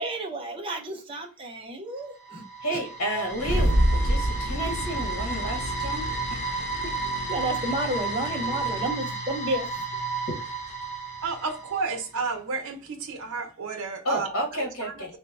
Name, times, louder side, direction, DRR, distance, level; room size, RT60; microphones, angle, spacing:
voice 1, 0.0-2.4 2.7-2.8 3.1-3.3 7.3-9.8, right 1 dB, 25° right, 0.6 m, -31 dB
sound 1, 2.0-12.1, right 3 dB, 35° left, 0.9 m, -33 dB
voice 2, 2.6-6.9 10.3-10.4 14.0-15.1, right 1 dB, 80° left, 1.2 m, -32 dB
sound 2, 3.4-9.2, left 5 dB, 50° left, 0.3 m, -42 dB
sound 3, 3.4-7.7, equal, 50° right, 1.0 m, -27 dB
voice 3, 11.2-15.2, right 4 dB, 85° right, 0.7 m, -32 dB
3.1 x 2.7 x 3.3 m
head